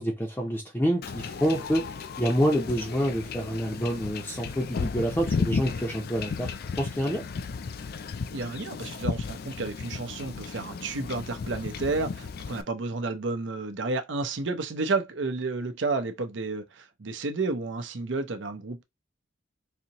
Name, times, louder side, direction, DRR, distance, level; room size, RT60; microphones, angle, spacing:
voice 1, 0.0-6.5 6.8-7.2, equal, 10° left, 0.6 m, -27 dB
Wind / Ocean / Boat Water vehicle, 1.0-12.6, left 5 dB, 50° left, 0.4 m, -34 dB
voice 2, 8.3-18.8, right 3 dB, 65° right, 0.7 m, -31 dB
4.0 x 2.8 x 2.9 m
head